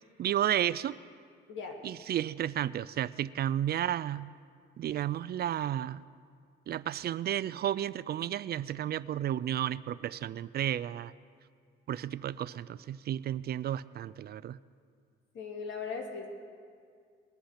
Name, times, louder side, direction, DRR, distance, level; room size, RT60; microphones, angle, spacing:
voice 1, 0.2-1.0 1.8-4.3 4.8-6.0 6.7-11.1 11.9-14.6, right 11 dB, 55° right, 17 dB, 0.4 m, -32 dB
voice 2, 1.5-1.8 15.3-16.3, left 5 dB, 75° left, 2 dB, 2.2 m, -38 dB
21.0 x 8.6 x 5.7 m, 2.1 s
cardioid pair, 90°, 20 cm